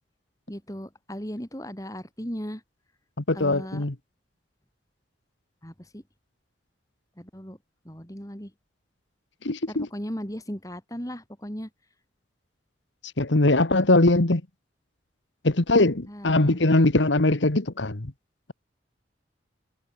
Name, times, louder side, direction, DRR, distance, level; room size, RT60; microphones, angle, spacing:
voice 1, 0.5-2.6 3.3-3.9 5.6-6.0 7.2-7.6 7.8-8.5 9.7-11.7 16.1-16.6, equal, 20° left, 5.0 m, -37 dB
voice 2, 3.3-3.9 9.4-9.9 13.2-14.4 15.4-18.1, left 2 dB, 80° left, 1.6 m, -21 dB
head